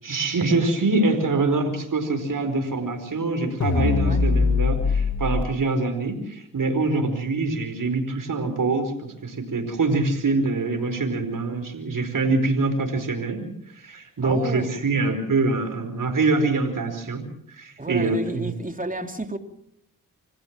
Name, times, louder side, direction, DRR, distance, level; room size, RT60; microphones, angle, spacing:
voice 1, 0.0-17.2 17.5-18.5, right 3 dB, 65° right, 5.0 m, -24 dB
sound 1, 3.6-5.4, left 5 dB, 55° left, 1.8 m, -21 dB
voice 2, 14.2-15.2 17.8-19.4, right 2 dB, 25° right, 3.3 m, -32 dB
27.0 x 15.0 x 7.6 m
cardioid pair, 50°, 35 cm